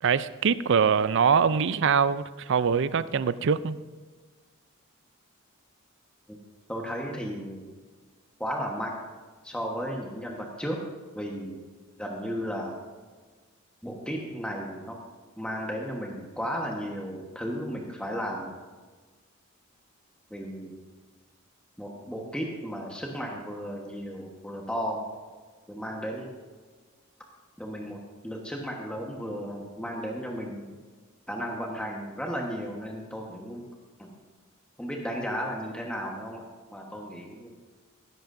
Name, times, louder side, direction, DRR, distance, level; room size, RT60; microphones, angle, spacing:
voice 1, 0.0-3.8, right 6 dB, 60° right, 0.4 m, -23 dB
voice 2, 6.7-7.6 8.4-8.9 9.4-10.8 11.1-11.6 12.0-12.8 13.8-15.0 15.4-18.5 20.3-20.8 21.8-25.1 25.7-26.3 27.6-28.0 28.2-30.7 31.3-33.6 34.0-34.1 34.8-36.4 36.7-37.5, equal, 5° left, 1.2 m, -34 dB
16.0 x 13.5 x 2.6 m
head